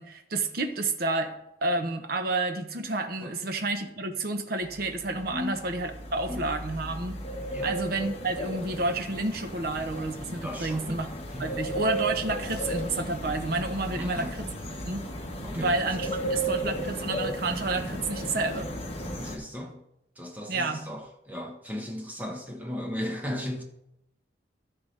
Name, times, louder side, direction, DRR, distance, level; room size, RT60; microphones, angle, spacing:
voice 1, 0.0-1.3 1.6-7.2 7.6-11.1 11.4-14.5 14.9-15.1 15.5-18.7 20.5-20.8, right 2 dB, 55° right, 0.9 m, -30 dB
sound 1, 4.7-19.4, right 1 dB, 35° left, 1.4 m, -35 dB
voice 2, 5.3-5.7 6.3-6.5 7.5-7.7 10.4-11.0 11.3-11.6 13.9-14.4 15.4-16.3 19.2-19.8 20.2-23.6, left 1 dB, 10° right, 1.1 m, -36 dB
14.5 x 5.8 x 3.4 m
head